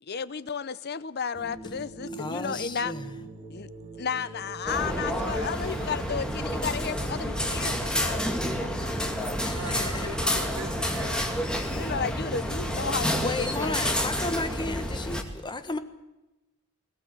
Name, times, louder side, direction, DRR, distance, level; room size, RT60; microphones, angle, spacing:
voice 1, 0.0-3.0 3.5-3.7 4.0-9.4 11.7-14.0, left 6 dB, 50° left, 0.7 m, -33 dB
sound 1, 1.4-13.6, right 3 dB, 35° right, 4.3 m, -45 dB
voice 2, 2.2-3.0 9.4-10.1 13.2-15.8, left 3 dB, 20° left, 1.3 m, -33 dB
sound 2, 4.7-15.2, equal, 5° left, 2.3 m, -29 dB
voice 3, 4.8-6.2 9.4-11.5, right 3 dB, 75° right, 3.9 m, -42 dB
21.5 x 18.5 x 7.6 m
head